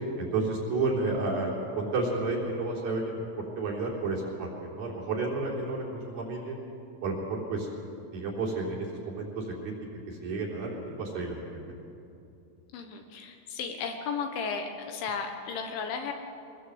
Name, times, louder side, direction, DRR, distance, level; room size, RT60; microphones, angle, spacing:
voice 1, 0.2-3.2 3.6-6.6 7.0-7.7 8.1-9.7 10.1-11.6, right 3 dB, 50° right, -3 dB, 5.1 m, -31 dB
voice 2, 12.7-16.1, left 5 dB, 70° left, 4 dB, 3.5 m, -34 dB
23.5 x 20.0 x 8.1 m, 2.7 s
omnidirectional pair, 6.0 m